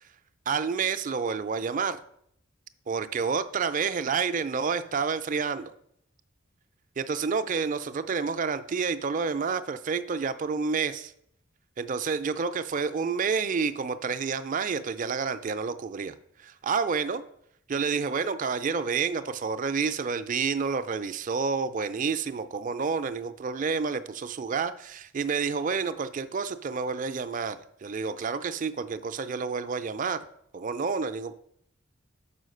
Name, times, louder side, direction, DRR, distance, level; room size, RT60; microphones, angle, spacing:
voice 1, 0.5-2.0 2.9-5.7 7.0-11.1 11.8-16.1 16.4-17.2 17.7-30.2 30.5-31.3, right 5 dB, 40° right, 0.4 m, -29 dB
5.6 x 4.8 x 6.4 m
head